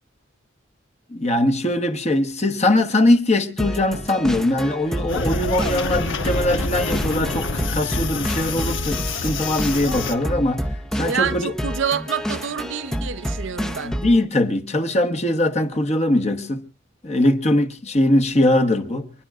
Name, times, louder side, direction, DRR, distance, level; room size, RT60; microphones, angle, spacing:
voice 1, 1.1-11.5 13.8-16.7 17.0-19.1, left 1 dB, 35° left, 1.1 m, -21 dB
sound 1, 3.6-14.2, equal, 5° left, 0.6 m, -29 dB
sound 2, 5.1-10.1, left 3 dB, 70° left, 1.1 m, -27 dB
sound 3, 8.3-14.8, left 1 dB, 85° left, 5.3 m, -49 dB
voice 2, 11.0-13.9, right 6 dB, 65° right, 0.6 m, -27 dB
29.0 x 10.5 x 2.4 m
head